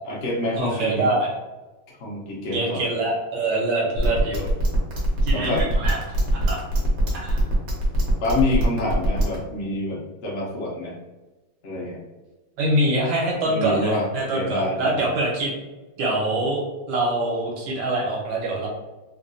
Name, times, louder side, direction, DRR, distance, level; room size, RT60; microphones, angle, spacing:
voice 1, 0.1-1.1 2.0-2.8 3.8-4.1 5.3-5.7 8.2-10.9 11.6-12.0 13.5-15.1, left 1 dB, 65° left, -4 dB, 0.7 m, -27 dB
voice 2, 0.6-1.3 2.5-4.5 5.2-6.0 6.4-6.6 7.1-7.4 12.6-15.5 16.0-16.6 16.9-18.7, right 1 dB, 75° right, -3 dB, 1.6 m, -24 dB
sound 1, 4.0-9.4, right 2 dB, 55° right, 1.1 m, -22 dB
3.6 x 2.2 x 2.5 m, 1.1 s
omnidirectional pair, 2.2 m